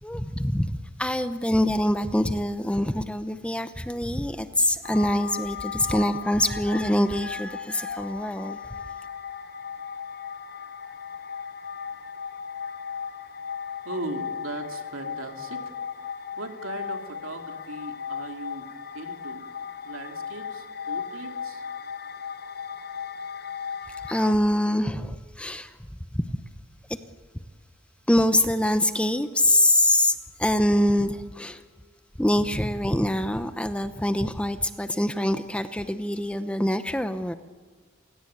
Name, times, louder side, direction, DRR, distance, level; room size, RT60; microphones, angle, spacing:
voice 1, 0.0-8.6 24.1-25.7 26.1-26.3 28.1-31.6 32.2-37.3, left 1 dB, 5° left, 0.8 m, -24 dB
sound 1, 4.8-24.3, left 7 dB, 50° left, 0.9 m, -36 dB
voice 2, 13.8-15.6 16.4-18.7 18.9-19.4 19.8-21.6, right 2 dB, 85° right, 2.8 m, -38 dB
28.5 x 17.0 x 8.7 m
head